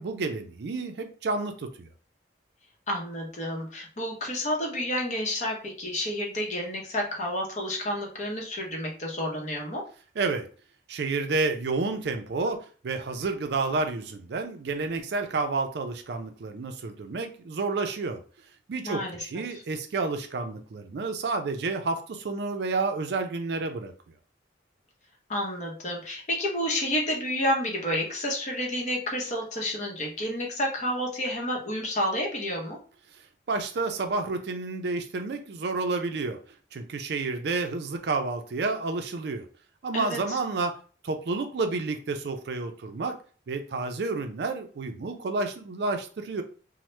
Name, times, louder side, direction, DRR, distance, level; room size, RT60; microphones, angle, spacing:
voice 1, 0.0-1.9 10.2-10.5 10.9-18.2 18.7-23.9 33.5-36.4 36.7-39.5 39.8-40.8 41.0-43.2 43.5-46.4, right 3 dB, 60° right, 6 dB, 0.4 m, -30 dB
voice 2, 2.9-9.8 18.8-19.2 25.3-32.8 39.9-40.4, left 1 dB, 40° left, 0 dB, 0.8 m, -30 dB
2.9 x 2.0 x 3.1 m, 0.40 s
head